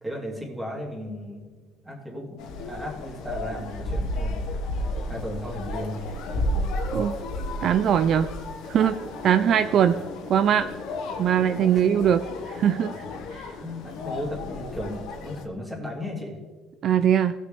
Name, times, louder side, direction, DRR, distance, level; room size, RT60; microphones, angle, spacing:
voice 1, 0.0-1.4 1.8-4.4 5.1-6.0 11.7-11.8 13.6-16.4, left 1 dB, 10° right, -2 dB, 2.5 m, -35 dB
sound 1, 2.4-15.5, left 1 dB, 70° left, 1.5 m, -32 dB
voice 2, 7.6-8.3 8.7-9.0 9.2-10.0 10.3-10.7 11.2-12.9 13.3-13.5 16.8-17.3, right 9 dB, 50° right, 11 dB, 0.3 m, -21 dB
18.5 x 6.4 x 3.4 m, 1.5 s
cardioid pair, 135°, 0 cm